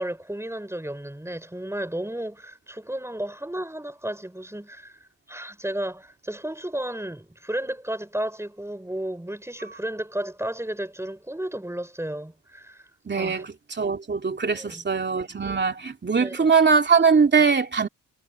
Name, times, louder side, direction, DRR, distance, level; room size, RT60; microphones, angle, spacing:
voice 1, 0.0-12.9 13.2-13.4 14.5-14.9 16.2-16.5, right 1 dB, 10° right, 5.7 m, -33 dB
voice 2, 13.1-17.9, right 5 dB, 35° right, 2.7 m, -21 dB
cardioid pair, 90°, 32 cm